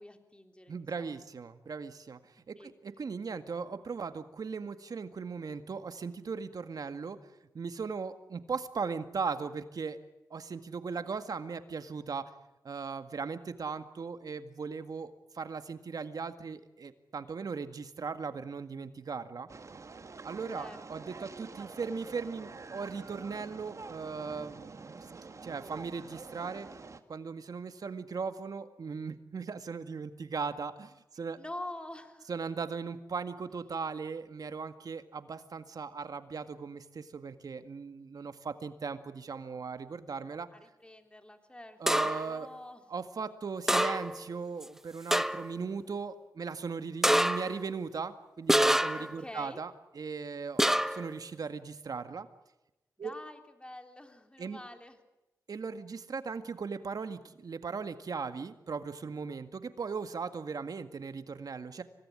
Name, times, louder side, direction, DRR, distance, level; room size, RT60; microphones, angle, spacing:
voice 1, 0.0-1.3 2.6-2.7 20.5-21.1 31.4-32.3 40.5-42.9 49.0-49.6 53.0-55.0, left 1 dB, 15° left, 5 dB, 3.4 m, -47 dB
voice 2, 0.7-7.2 7.5-10.0 10.3-12.3 12.6-19.5 20.2-24.7 25.4-26.7 27.1-31.4 32.3-40.5 41.8-42.5 42.9-52.3 53.0-53.1 54.4-54.6 55.5-61.8, right 5 dB, 65° right, 9 dB, 1.9 m, -38 dB
sound 1, 19.5-27.0, right 4 dB, 45° right, 1.9 m, -47 dB
sound 2, 41.9-42.3 43.7-44.3 44.6-44.7 45.1-45.5 47.0-47.6 48.5-49.2 50.6-51.1, right 1 dB, 5° right, 0.9 m, -26 dB
25.0 x 18.5 x 9.9 m, 0.95 s
cardioid pair, 65°, 7 cm